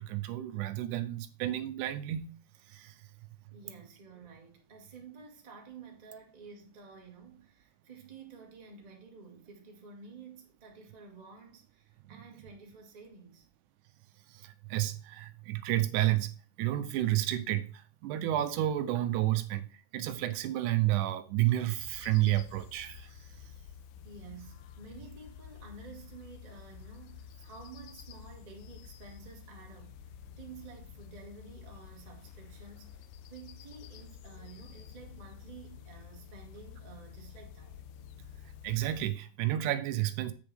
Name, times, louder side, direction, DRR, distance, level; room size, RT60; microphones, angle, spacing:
voice 1, 0.0-2.3 2.7-3.0 12.1-12.2 14.3-16.3 16.6-19.7 19.9-23.1 38.6-40.3, right 14 dB, 80° right, 2.1 m, -31 dB
voice 2, 3.5-13.4 24.0-30.0 30.4-33.0 33.3-37.7, right 4 dB, 25° right, 0.8 m, -51 dB
sound 1, 21.8-39.1, left 8 dB, 80° left, 2.1 m, -50 dB
7.8 x 6.8 x 3.4 m
omnidirectional pair, 3.6 m